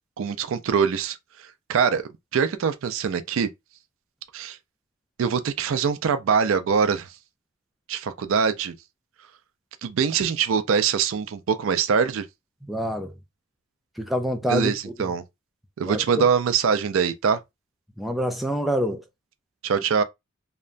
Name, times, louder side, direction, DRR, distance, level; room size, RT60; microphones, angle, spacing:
voice 1, 0.2-1.2 1.7-3.5 4.3-4.6 5.2-7.1 7.9-8.8 9.8-12.3 14.5-15.2 15.8-17.4 19.6-20.0, right 6 dB, 70° right, 0.4 m, -23 dB
voice 2, 12.6-13.1 14.0-14.7 15.8-16.2 18.0-19.0, equal, ahead, 0.3 m, -26 dB
2.9 x 2.2 x 2.4 m
head